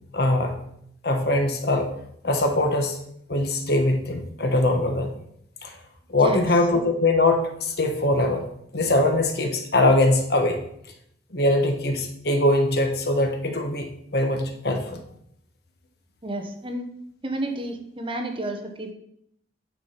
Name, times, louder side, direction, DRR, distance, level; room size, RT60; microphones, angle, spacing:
voice 1, 0.1-0.5 1.0-1.9 2.2-3.0 3.3-5.1 5.6-5.7 6.1-8.4 8.7-10.6 11.3-15.0, left 2 dB, 60° left, 4 dB, 1.4 m, -22 dB
voice 2, 16.2-16.8 17.2-18.9, right 1 dB, 30° right, 4 dB, 1.2 m, -31 dB
9.4 x 5.1 x 5.8 m, 0.72 s
head